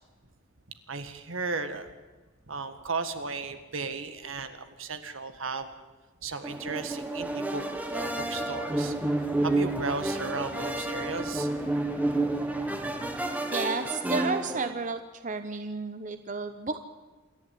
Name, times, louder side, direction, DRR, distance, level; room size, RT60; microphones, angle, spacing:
voice 1, 0.9-1.9 2.5-5.7 6.2-7.6 7.9-8.9 9.4-11.5, right 4 dB, 75° right, 9 dB, 1.8 m, -35 dB
sound 1, 6.4-14.7, right 2 dB, 10° right, 1.5 m, -30 dB
sound 2, 7.9-13.3, left 1 dB, 80° left, 4.7 m, -49 dB
voice 2, 13.5-16.8, right 4 dB, 40° right, 9 dB, 0.9 m, -32 dB
27.5 x 11.5 x 8.5 m, 1.3 s
head